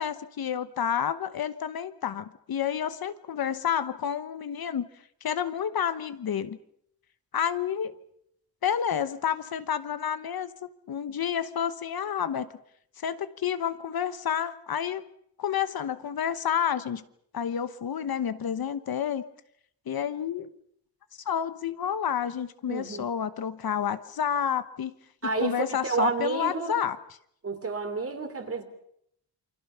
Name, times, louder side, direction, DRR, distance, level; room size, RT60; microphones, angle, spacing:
voice 1, 0.0-4.9 5.2-6.6 7.3-8.0 8.6-10.5 10.9-12.5 13.0-15.0 15.4-17.0 17.3-19.2 19.9-20.5 21.2-24.9 25.4-27.0, left 8 dB, 60° left, 12 dB, 1.0 m, -29 dB
voice 2, 22.7-23.1 25.2-26.7 27.4-28.6, right 4 dB, 35° right, 8 dB, 3.1 m, -30 dB
28.0 x 25.0 x 5.7 m, 0.71 s
wide cardioid pair, 175°, 42 cm